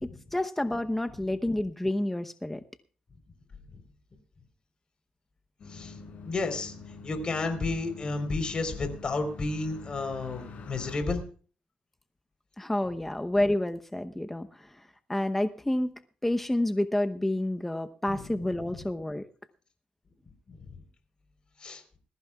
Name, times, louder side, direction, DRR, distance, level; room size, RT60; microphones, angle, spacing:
voice 1, 0.0-2.6 12.6-14.8 15.1-19.3, left 1 dB, 10° left, 8 dB, 0.8 m, -29 dB
sound 1, 5.6-11.0, left 4 dB, 55° left, 6.9 m, -45 dB
voice 2, 6.3-6.7 7.0-11.2 18.1-18.5 20.5-20.6 21.6-21.8, left 3 dB, 35° left, 7 dB, 3.8 m, -32 dB
20.5 x 15.5 x 2.4 m, 0.40 s
cardioid pair, 105°, 3 cm